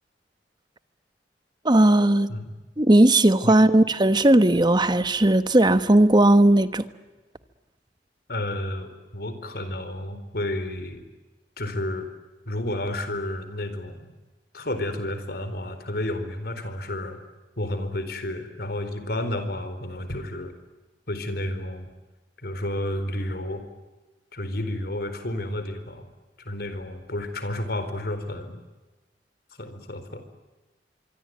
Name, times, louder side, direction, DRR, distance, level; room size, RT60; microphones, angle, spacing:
voice 1, 1.6-2.3 2.8-6.9, right 1 dB, 25° right, 12 dB, 1.2 m, -17 dB
voice 2, 8.3-11.0 11.6-12.1 12.5-14.1 14.5-17.2 17.6-20.5 21.1-21.9 22.4-23.6 24.3-26.1 26.4-28.6 29.6-30.3, left 1 dB, 60° left, 10 dB, 4.2 m, -31 dB
25.0 x 24.5 x 9.4 m, 1.2 s
head